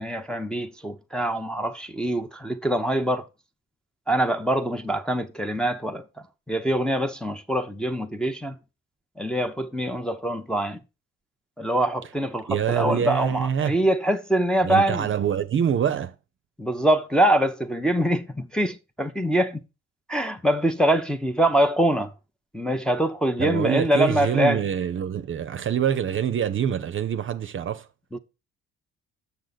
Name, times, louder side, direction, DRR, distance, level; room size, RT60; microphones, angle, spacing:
voice 1, 0.0-3.3 4.1-6.0 6.5-8.6 9.2-10.8 11.6-15.1 16.6-19.6 20.1-22.1 22.5-24.6 28.1-28.2, right 1 dB, 5° left, 0.7 m, -24 dB
voice 2, 12.5-13.8 14.6-16.1 23.4-27.9, right 8 dB, 40° right, 0.7 m, -25 dB
7.0 x 6.4 x 4.0 m
cardioid pair, 95°, 30 cm